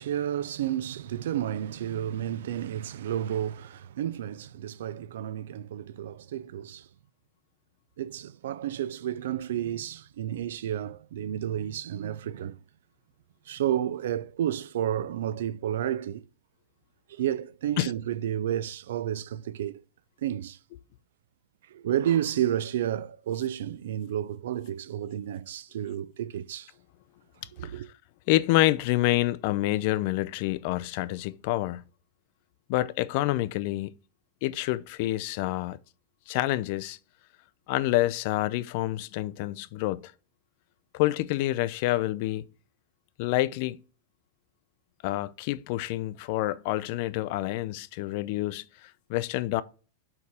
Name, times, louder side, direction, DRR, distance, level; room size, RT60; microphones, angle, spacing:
voice 1, 0.0-6.9 8.0-12.6 13.5-16.2 17.1-19.8 20.2-20.6 21.7-26.7 27.5-27.9, right 11 dB, 70° right, 0.4 m, -31 dB
voice 2, 28.3-31.8 32.7-33.9 34.4-35.8 36.3-37.0 37.7-40.1 40.9-42.4 43.2-43.8 45.0-48.7 49.1-49.6, left 16 dB, 40° left, 0.4 m, -27 dB
4.8 x 4.6 x 5.4 m
supercardioid pair, 165°, 0 cm